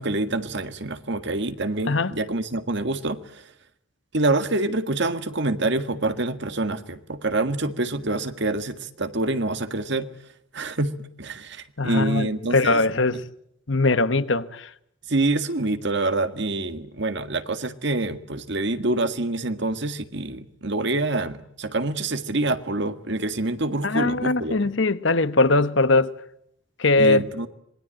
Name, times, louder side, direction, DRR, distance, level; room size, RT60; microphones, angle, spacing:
voice 1, 0.0-3.4 4.1-10.1 10.5-12.8 15.1-24.7 27.0-27.5, right 2 dB, 60° right, 1.9 m, -26 dB
voice 2, 11.8-13.2 13.7-14.7 23.8-26.1 26.8-27.2, left 3 dB, 65° left, 1.2 m, -21 dB
26.5 x 21.0 x 9.0 m
head